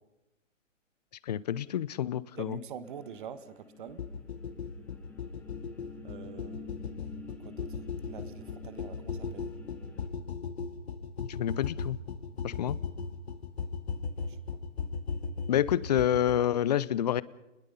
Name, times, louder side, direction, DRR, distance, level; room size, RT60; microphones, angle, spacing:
voice 1, 1.3-2.6 11.2-12.0 12.4-12.8 15.5-17.2, left 10 dB, 30° left, 20 dB, 0.7 m, -28 dB
voice 2, 2.4-4.0 6.0-7.8 8.0-9.5 14.1-14.4, right 7 dB, 40° right, 12 dB, 1.6 m, -45 dB
sound 1, 2.8-10.1, left 4 dB, 5° left, 1.7 m, -49 dB
sound 2, 4.0-16.5, left 5 dB, 55° left, 2.0 m, -37 dB
27.5 x 21.0 x 5.7 m, 0.98 s
hypercardioid pair, 145°, 39 cm